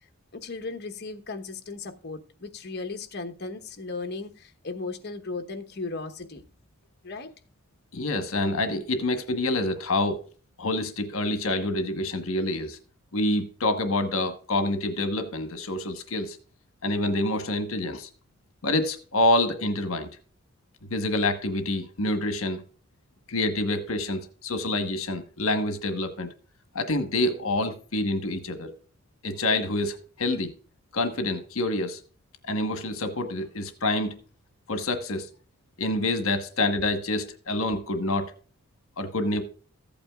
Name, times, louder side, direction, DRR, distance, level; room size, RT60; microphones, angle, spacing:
voice 1, 0.3-6.4 7.0-7.3, left 3 dB, 50° left, 1.1 m, -36 dB
voice 2, 7.9-10.3 10.6-12.8 13.1-16.4 16.8-18.1 18.6-20.1 20.9-22.6 23.3-26.3 26.7-28.7 29.2-30.5 30.9-32.0 32.4-34.2 34.7-35.3 35.8-38.3 39.0-39.4, left 2 dB, 75° left, 1.2 m, -27 dB
14.5 x 8.7 x 2.4 m
head